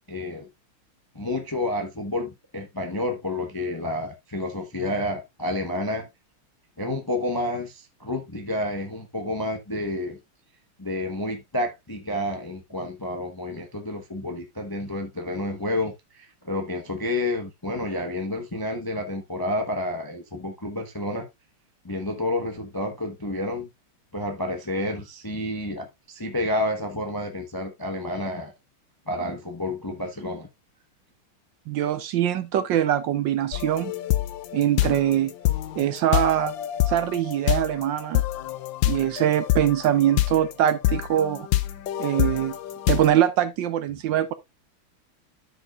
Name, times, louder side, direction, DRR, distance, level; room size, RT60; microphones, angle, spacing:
voice 1, 0.1-0.5 1.1-6.1 6.8-10.2 10.8-21.3 21.8-23.7 24.1-28.5 29.1-30.5, left 1 dB, 20° left, 0.6 m, -30 dB
voice 2, 31.7-33.9 34.5-35.3 35.8-36.5 36.9-38.2 38.9-41.5 42.0-42.6 42.9-44.3, right 11 dB, 70° right, 1.2 m, -23 dB
sound 1, 33.5-43.1, left 14 dB, 70° left, 1.3 m, -26 dB
13.0 x 5.2 x 2.4 m
omnidirectional pair, 2.3 m